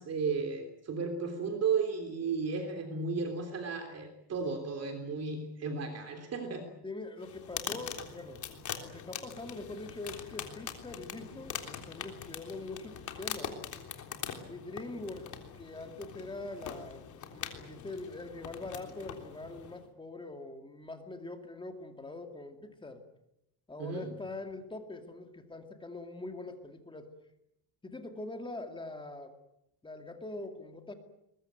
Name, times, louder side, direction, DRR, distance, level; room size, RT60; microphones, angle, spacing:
voice 1, 0.0-6.7 23.8-24.1, right 5 dB, 35° right, 4 dB, 3.4 m, -34 dB
voice 2, 6.8-8.4 8.8-13.6 14.5-17.0 17.3-23.0 23.7-27.1 27.8-29.3 29.8-30.9, left 2 dB, 10° left, 6 dB, 2.4 m, -43 dB
sound 1, 7.2-19.9, left 8 dB, 45° left, 3.5 m, -43 dB
22.0 x 22.0 x 9.3 m, 0.83 s
cardioid pair, 165°, 43 cm